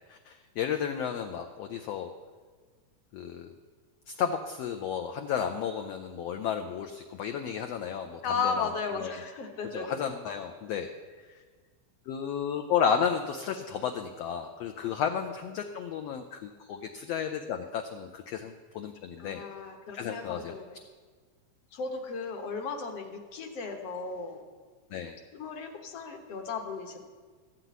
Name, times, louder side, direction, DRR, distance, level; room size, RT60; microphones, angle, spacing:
voice 1, 0.1-2.1 3.1-3.5 4.1-8.7 9.0-9.1 9.7-10.9 11.3-11.4 12.1-19.4 19.9-20.5 24.9-25.2, left 7 dB, 80° left, 5 dB, 1.4 m, -33 dB
voice 2, 8.2-10.0 19.2-20.8 21.7-24.4 25.3-27.0, left 5 dB, 60° left, 5 dB, 1.8 m, -35 dB
13.5 x 5.9 x 9.3 m, 1.5 s
omnidirectional pair, 3.6 m